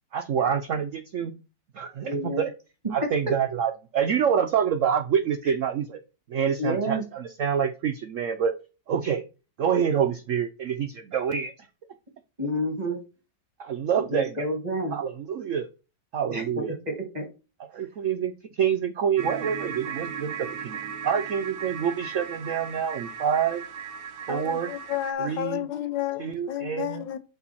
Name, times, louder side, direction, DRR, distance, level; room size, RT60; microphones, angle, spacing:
voice 1, 0.1-1.3 1.7-2.5 2.9-6.0 6.3-8.5 8.9-9.2 9.6-11.7 13.6-14.5 14.9-15.7 16.1-16.7 17.7-23.6 24.3-24.7 25.2-25.7 26.2-27.0, right 8 dB, 75° right, 0.7 m, -27 dB
voice 2, 2.0-2.4 3.0-3.1 6.6-7.0 12.4-13.0 14.0-15.0 16.3-17.2, equal, 25° right, 1.7 m, -29 dB
sound 1, 19.2-25.1, right 7 dB, 60° right, 1.3 m, -36 dB
voice 3, 24.3-27.2, left 11 dB, 75° left, 1.5 m, -31 dB
8.5 x 3.7 x 4.2 m
omnidirectional pair, 2.0 m